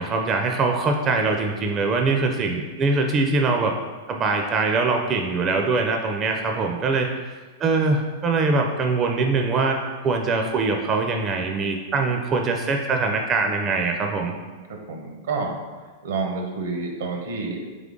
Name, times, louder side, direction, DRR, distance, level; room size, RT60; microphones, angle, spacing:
voice 1, 0.0-3.8 4.1-7.1 7.6-9.8 10.0-14.3, right 3 dB, 30° right, 3 dB, 0.4 m, -23 dB
voice 2, 14.1-15.6 16.0-17.7, right 4 dB, 80° right, 2 dB, 0.8 m, -29 dB
3.7 x 3.2 x 3.7 m, 1.4 s
hypercardioid pair, 120°, 0 cm